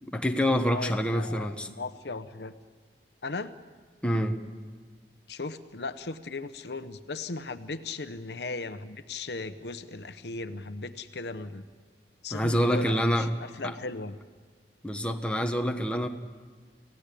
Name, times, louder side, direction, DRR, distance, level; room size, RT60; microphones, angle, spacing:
voice 1, 0.0-1.7 4.0-4.4 12.3-13.3 13.6-13.7 14.8-16.1, equal, 5° left, 4 dB, 1.3 m, -26 dB
voice 2, 0.6-2.5 3.2-3.5 5.3-11.6 12.2-14.1, left 3 dB, 70° left, 10 dB, 1.0 m, -37 dB
28.5 x 17.0 x 8.4 m, 1.5 s
head